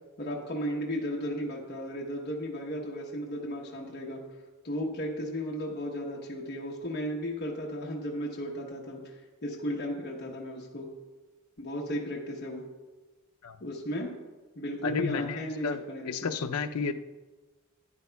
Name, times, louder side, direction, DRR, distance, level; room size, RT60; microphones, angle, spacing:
voice 1, 0.2-4.2 4.6-10.9 11.6-12.6 13.6-14.2 14.5-16.3, equal, 45° left, -3 dB, 1.0 m, -35 dB
voice 2, 14.8-16.9, left 5 dB, 75° left, 7 dB, 0.5 m, -32 dB
12.0 x 9.7 x 2.3 m, 1.3 s
head